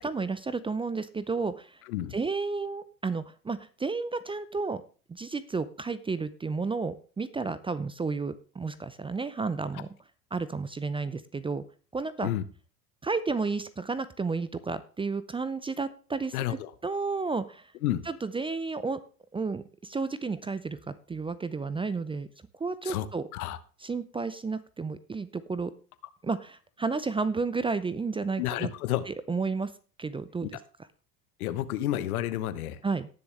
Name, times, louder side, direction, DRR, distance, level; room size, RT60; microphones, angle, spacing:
voice 1, 0.0-1.8 2.1-4.8 5.1-9.9 10.3-11.6 11.9-12.3 13.0-16.6 16.8-17.7 18.1-19.0 19.3-22.3 22.6-23.3 23.8-25.7 26.2-28.7 29.1-29.7 30.0-30.6 32.8-33.1, right 4 dB, 10° right, 15 dB, 0.6 m, -32 dB
voice 2, 16.3-16.7 17.8-18.0 22.8-23.1 23.3-23.6 28.4-29.0 31.4-32.8, left 13 dB, 70° left, 14 dB, 1.2 m, -30 dB
18.5 x 6.9 x 3.3 m, 0.38 s
hypercardioid pair, 85°, 45 cm